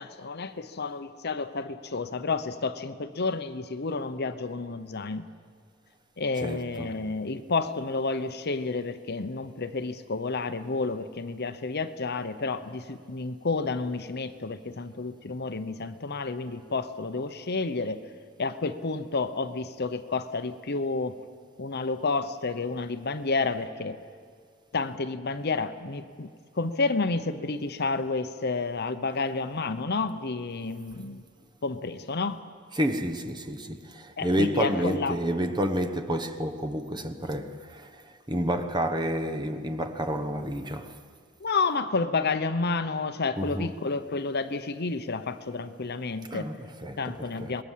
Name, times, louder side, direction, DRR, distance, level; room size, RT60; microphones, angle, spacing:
voice 1, 0.0-5.2 6.2-18.0 18.4-21.2 21.6-24.0 24.7-26.3 26.6-31.2 31.6-32.4 34.2-35.2 41.4-46.5 47.0-47.6, left 3 dB, 50° left, 0.9 m, -30 dB
voice 2, 6.4-7.0 32.7-41.0 43.4-43.7 46.2-47.6, equal, 20° right, 1.1 m, -30 dB
26.5 x 21.0 x 7.5 m
head